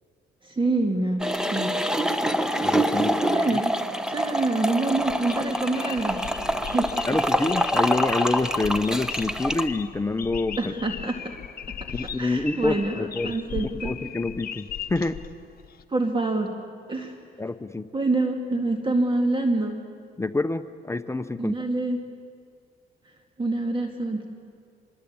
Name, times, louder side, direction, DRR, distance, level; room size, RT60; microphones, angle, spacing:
voice 1, 0.4-1.2 1.5-1.7 3.3-3.7 4.1-6.2 6.6-7.2 10.6-11.2 11.7-11.8 12.2-13.9 15.9-16.5 16.9-17.2 17.9-19.8 21.4-22.0 23.4-24.2, right 2 dB, 25° right, 4 dB, 2.1 m, -26 dB
sound 1, 1.2-9.6, equal, 5° right, 1.2 m, -26 dB
voice 2, 2.6-3.2 3.5-3.6 7.1-10.7 11.9-15.2 17.4-17.9 20.2-21.6, left 2 dB, 15° left, 11 dB, 0.8 m, -27 dB
sound 2, 4.9-15.8, left 8 dB, 50° left, 1.2 m, -38 dB
25.5 x 22.0 x 8.8 m, 2.2 s
cardioid pair, 90°, 20 cm